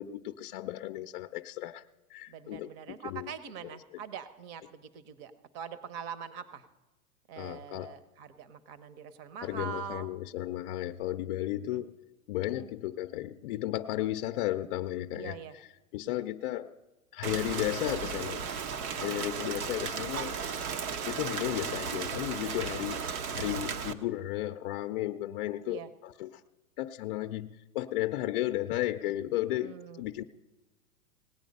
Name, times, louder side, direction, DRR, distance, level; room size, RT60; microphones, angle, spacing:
voice 1, 0.0-1.8 2.1-2.7 3.0-3.3 7.4-8.0 9.4-11.9 12.3-15.4 15.9-16.8 17.1-18.4 19.0-20.4 21.0-23.0 23.3-26.4 26.8-30.2, left 15 dB, 40° left, 6 dB, 0.5 m, -34 dB
voice 2, 2.3-6.7 7.3-10.1 11.7-11.8 12.5-12.7 15.1-15.5 19.0-19.3 22.7-22.8 25.7-25.9 29.6-30.0, right 7 dB, 40° right, 12 dB, 1.0 m, -43 dB
Rain, 17.2-23.9, right 6 dB, 70° right, 1.1 m, -35 dB
18.0 x 9.0 x 5.3 m, 1.1 s
hypercardioid pair, 125°, 44 cm